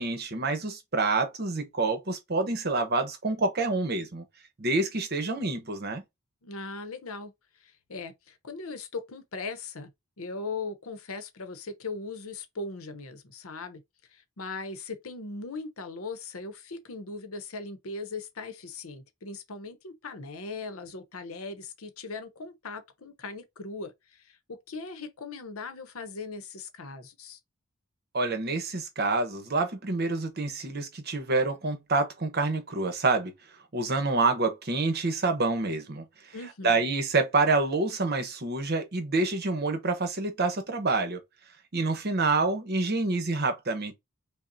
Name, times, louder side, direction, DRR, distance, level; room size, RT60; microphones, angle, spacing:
voice 1, 0.0-4.2 4.6-6.0 28.1-33.3 33.7-36.0 36.6-41.2 41.7-43.9, right 3 dB, 50° right, 1.0 m, -27 dB
voice 2, 6.4-7.3 7.6-9.9 10.2-13.8 14.1-27.4 36.3-36.9, left 3 dB, 80° left, 0.8 m, -39 dB
5.3 x 2.1 x 2.7 m
head